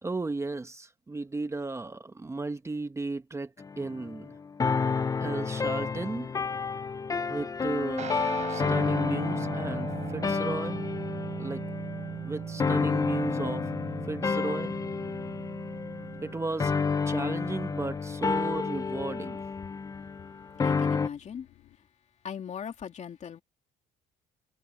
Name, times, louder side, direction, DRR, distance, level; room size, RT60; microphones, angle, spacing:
voice 1, 0.0-4.4 5.2-6.3 7.3-8.1 8.5-10.8 11.4-11.6 12.2-13.7 14.1-14.7 16.2-16.7 17.1-19.4, right 3 dB, 15° right, 1.1 m, -34 dB
sound 1, 3.6-21.1, left 5 dB, 20° left, 0.5 m, -30 dB
sound 2, 4.8-21.8, left 15 dB, 80° left, 2.8 m, -56 dB
Guitar, 8.0-16.8, right 7 dB, 45° right, 3.9 m, -39 dB
voice 2, 20.6-21.5 22.2-23.4, left 8 dB, 45° left, 2.7 m, -39 dB
cardioid pair, 110°, 17 cm